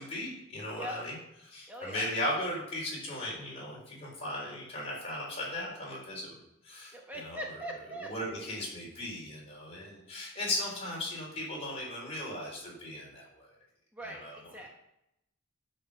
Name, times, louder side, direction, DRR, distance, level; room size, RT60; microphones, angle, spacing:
voice 1, 0.1-1.2 1.4-6.4 6.6-7.4 8.0-13.5 14.0-14.4, left 1 dB, 30° left, -4 dB, 4.1 m, -37 dB
voice 2, 1.7-2.1 6.9-8.1 13.9-14.7, equal, 10° right, 0 dB, 1.0 m, -41 dB
11.0 x 5.3 x 6.7 m, 0.83 s
head